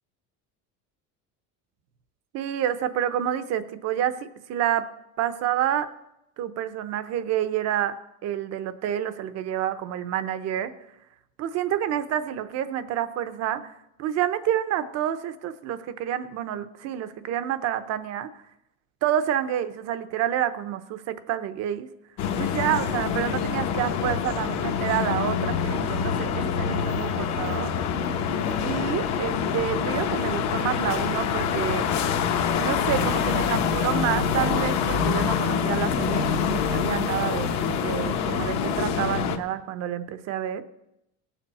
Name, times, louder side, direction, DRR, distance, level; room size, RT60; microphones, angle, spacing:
voice 1, 2.3-4.9 5.2-5.9 6.4-10.7 11.4-13.7 14.0-18.3 19.0-21.9 22.4-27.7 28.6-31.9 32.6-40.6, right 10 dB, 50° right, 11 dB, 0.8 m, -28 dB
sound 1, 22.2-39.4, left 7 dB, 50° left, 1.0 m, -26 dB
18.5 x 7.3 x 4.2 m, 0.86 s
cardioid pair, 155°, 35 cm